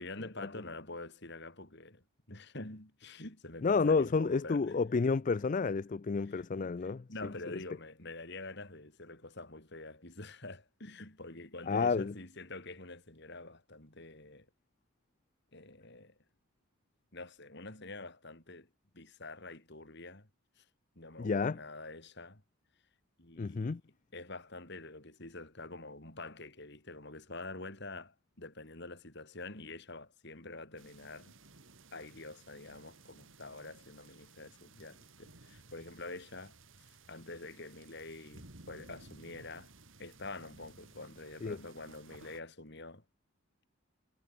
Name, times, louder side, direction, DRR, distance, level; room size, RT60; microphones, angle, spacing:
voice 1, 0.0-4.8 6.3-14.5 15.5-16.2 17.1-20.3 20.6-20.7 21.0-22.4 23.2-23.8 24.1-31.4 31.9-39.7 40.0-43.0, left 2 dB, 50° left, 4.1 m, -47 dB
voice 2, 3.6-7.0 11.7-12.1 21.2-21.6 23.4-23.8 41.4-41.6, left 4 dB, 35° left, 0.4 m, -30 dB
sound 1, 30.8-42.4, right 3 dB, 65° right, 2.8 m, -57 dB
head